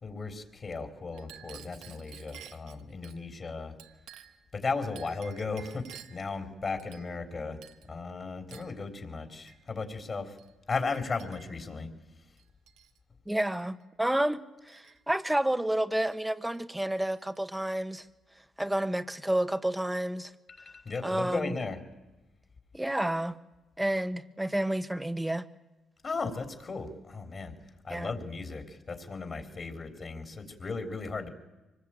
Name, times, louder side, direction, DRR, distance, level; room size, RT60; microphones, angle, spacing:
voice 1, 0.0-3.7 4.5-7.6 7.9-10.4 10.7-11.9 20.5-21.8 26.0-27.5 27.8-31.3, left 4 dB, 40° left, 8 dB, 3.6 m, -36 dB
Chink clink, 1.1-3.2 3.8-4.5 5.0-6.3 6.8-7.3 7.6-7.9 8.5-8.8 9.5-9.6 10.4-10.5 10.9-11.6 12.4-13.0 13.3-13.6 14.7-15.4 16.1-16.3 16.5-17.4, right 10 dB, 90° right, 1.3 m, -52 dB
voice 2, 13.3-18.0 18.6-20.3 21.0-21.6 22.7-23.4 23.8-25.5 27.9-28.1, right 1 dB, 5° right, 11 dB, 1.2 m, -30 dB
25.0 x 20.0 x 8.9 m, 1.1 s
cardioid pair, 90°, 0 cm